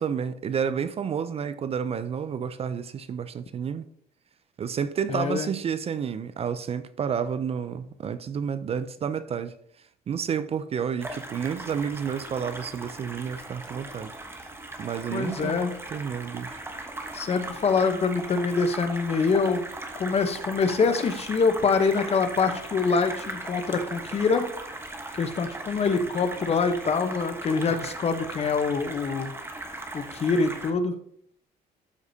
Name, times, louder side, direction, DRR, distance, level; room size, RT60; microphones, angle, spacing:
voice 1, 0.0-3.9 4.6-9.5 10.1-14.1 14.8-15.6 15.9-16.6, right 7 dB, 35° right, 0.4 m, -30 dB
voice 2, 5.1-5.5 15.1-15.7 17.1-19.6 20.0-24.5 25.1-29.3 29.9-30.9, left 4 dB, 35° left, 0.9 m, -25 dB
sound 1, 11.0-30.7, right 2 dB, 15° right, 1.1 m, -38 dB
12.5 x 4.8 x 2.7 m
cardioid pair, 110°, 17 cm